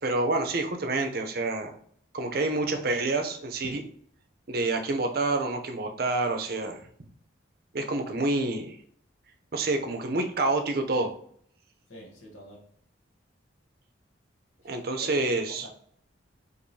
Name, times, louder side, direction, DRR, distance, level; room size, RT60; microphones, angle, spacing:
voice 1, 0.0-1.7 2.1-3.8 4.5-6.8 7.7-8.8 9.5-11.1 14.6-15.7, right 2 dB, 50° right, 5 dB, 0.5 m, -28 dB
voice 2, 11.9-12.7 14.6-14.7 15.0-15.7, equal, 80° left, -1 dB, 1.0 m, -45 dB
4.6 x 2.6 x 2.7 m, 0.62 s
head